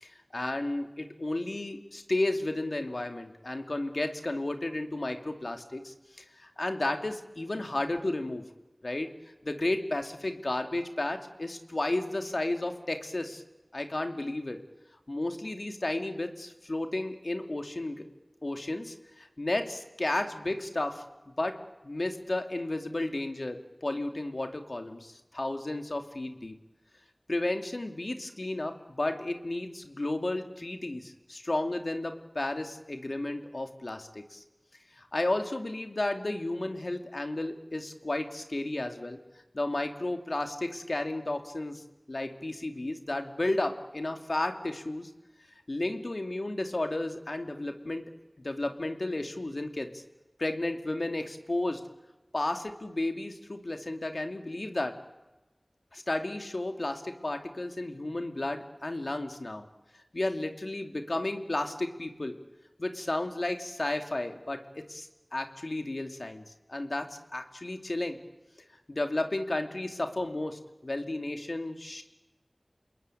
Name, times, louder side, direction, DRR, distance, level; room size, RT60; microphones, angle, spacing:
voice 1, 0.0-8.4 8.8-9.1 9.4-13.4 13.7-14.6 15.1-18.0 18.4-21.0 21.4-21.5 21.8-26.6 27.3-34.4 35.0-39.2 39.5-41.8 42.1-45.1 45.7-48.0 48.4-50.0 50.4-51.8 52.3-54.9 55.9-59.6 60.1-62.4 62.8-66.4 66.7-68.2 68.9-72.0, left 2 dB, 70° left, 6 dB, 2.7 m, -33 dB
28.5 x 21.0 x 9.2 m, 1.0 s
wide cardioid pair, 45°, 0 cm